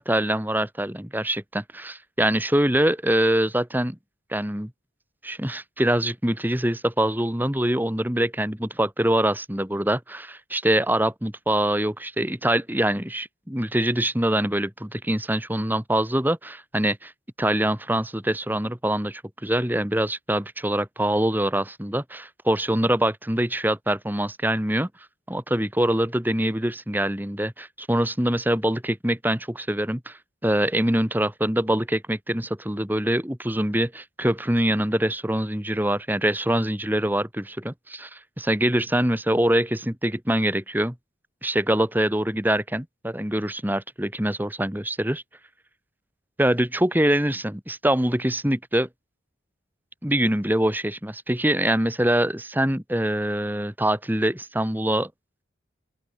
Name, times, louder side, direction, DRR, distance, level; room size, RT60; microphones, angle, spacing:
voice 1, 0.0-4.0 4.3-4.7 5.2-17.1 17.4-24.9 25.3-40.9 41.4-45.2 46.4-48.9 50.0-55.1, right 1 dB, 10° right, 2.1 m, -24 dB
open air
head